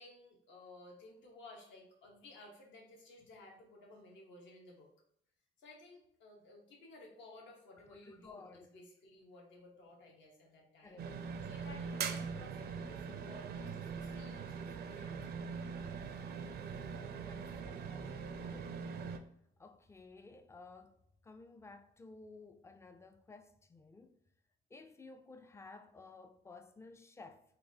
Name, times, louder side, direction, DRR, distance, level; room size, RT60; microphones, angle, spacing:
voice 1, 0.0-4.9 5.6-11.0 11.4-15.9, left 2 dB, 70° left, 1.1 m, -56 dB
voice 2, 7.9-8.7 10.8-11.1 17.2-18.9 19.6-24.2 24.7-27.4, left 3 dB, 15° left, 0.3 m, -55 dB
sound 1, 11.0-19.2, right 6 dB, 55° right, 0.4 m, -42 dB
4.0 x 2.5 x 2.7 m
cardioid pair, 90°, 20 cm